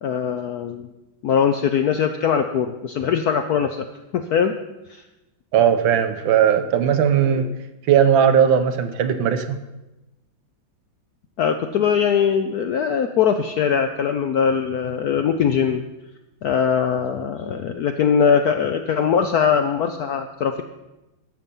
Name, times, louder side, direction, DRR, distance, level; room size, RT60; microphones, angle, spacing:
voice 1, 0.0-0.9 1.2-3.9 4.1-4.6 4.9-5.0 11.4-15.8 16.4-20.6, left 7 dB, 75° left, 6 dB, 0.9 m, -21 dB
voice 2, 5.5-7.5 7.9-9.6, right 8 dB, 75° right, 9 dB, 1.5 m, -18 dB
12.0 x 7.4 x 5.4 m, 1.0 s
omnidirectional pair, 2.2 m